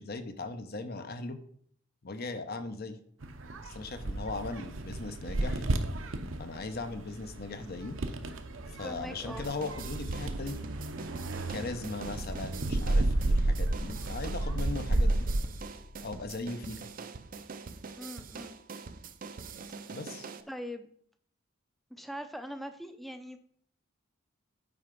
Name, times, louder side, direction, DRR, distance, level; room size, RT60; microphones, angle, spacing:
voice 1, 0.0-1.4 2.0-3.0 3.6-5.6 6.4-8.0 8.8-10.6 11.5-15.2 16.0-16.8 19.9-20.3, left 3 dB, 50° left, 10 dB, 0.8 m, -38 dB
sound 1, 3.2-15.4, right 2 dB, 70° right, 0.8 m, -32 dB
sound 2, 3.7-16.4, left 1 dB, 70° left, 1.1 m, -53 dB
voice 2, 8.7-9.5 18.0-18.6 20.5-21.0 21.9-23.4, equal, ahead, 8 dB, 0.6 m, -42 dB
sound 3, 9.4-20.4, right 4 dB, 45° right, 0.5 m, -44 dB
8.8 x 4.8 x 5.2 m, 0.63 s
head